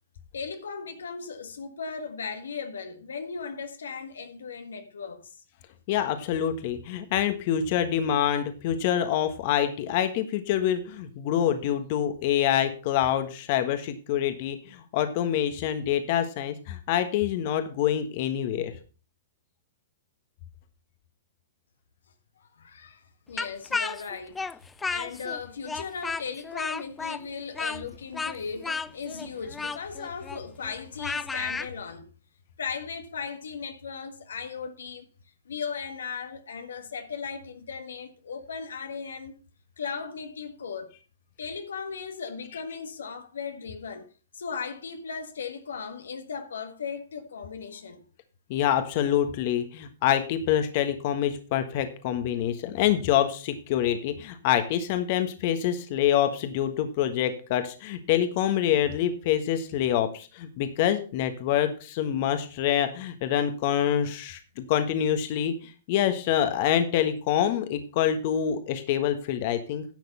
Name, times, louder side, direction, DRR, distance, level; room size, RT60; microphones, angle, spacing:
voice 1, 0.3-5.3 22.4-24.4 24.9-32.1 32.6-35.1 35.4-39.3 39.8-40.9 41.4-44.1 44.3-48.0, left 5 dB, 80° left, 1.5 m, -37 dB
voice 2, 5.9-18.7 48.5-69.8, left 10 dB, 50° left, 1.4 m, -26 dB
Speech, 23.4-25.4 25.7-31.7, left 4 dB, 10° left, 0.4 m, -33 dB
10.5 x 6.7 x 5.4 m
hypercardioid pair, 125°, 0 cm